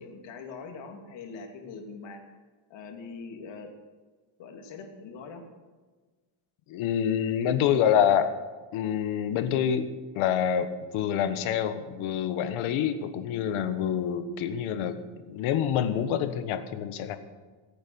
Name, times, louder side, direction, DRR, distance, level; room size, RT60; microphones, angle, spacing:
voice 1, 0.0-2.2 2.7-3.7 4.4-5.4, left 4 dB, 65° left, 3 dB, 3.0 m, -42 dB
voice 2, 6.7-8.3 8.7-9.9 10.1-17.2, left 9 dB, 85° left, 10 dB, 1.6 m, -27 dB
21.5 x 8.8 x 7.1 m, 1.3 s
cardioid pair, 155°, 48 cm